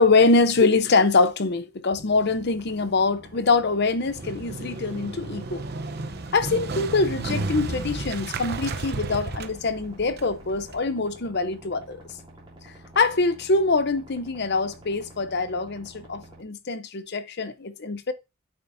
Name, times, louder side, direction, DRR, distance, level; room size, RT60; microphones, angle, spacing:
voice 1, 0.0-5.6 6.3-12.0 13.0-18.1, left 3 dB, 55° left, 0.8 m, -23 dB
sound 1, 1.9-16.4, right 1 dB, 25° right, 3.2 m, -49 dB
Motorcycle, 4.1-10.8, right 3 dB, 55° right, 0.9 m, -33 dB
9.1 x 7.6 x 2.7 m
head